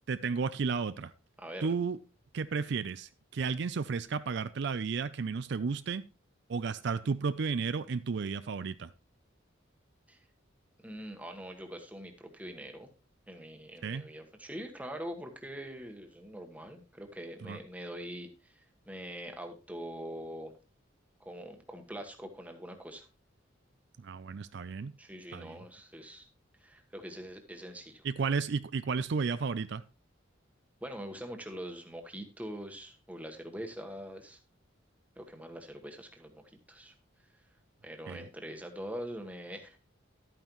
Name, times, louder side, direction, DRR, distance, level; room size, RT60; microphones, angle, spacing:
voice 1, 0.1-1.1 1.6-2.0 2.3-6.0 6.5-8.9 13.8-14.0 17.4-17.6 24.0-24.9 25.3-25.6 28.0-29.8 38.1-38.2, right 5 dB, 60° right, 13 dB, 0.4 m, -33 dB
voice 2, 1.4-1.7 10.1-10.2 10.8-12.9 13.3-18.6 18.9-20.5 21.2-23.1 25.0-26.3 26.6-28.0 30.8-34.4 35.2-36.9 37.8-39.8, equal, 10° right, 4 dB, 1.2 m, -43 dB
12.0 x 9.1 x 3.1 m, 0.31 s
head